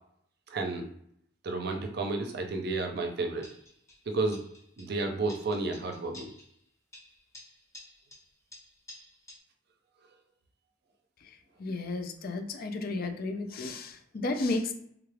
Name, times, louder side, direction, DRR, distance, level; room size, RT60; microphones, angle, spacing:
voice 1, 0.5-0.9 1.4-3.5 4.1-4.4 4.8-6.3, right 3 dB, 60° right, 4 dB, 0.5 m, -31 dB
sound 1, 3.4-4.0 4.3-5.0 5.3-6.6 6.9-9.4, left 1 dB, 15° left, 0.8 m, -52 dB
voice 2, 11.6-14.7, left 2 dB, 55° left, 6 dB, 0.5 m, -33 dB
3.4 x 2.3 x 3.3 m, 0.70 s
head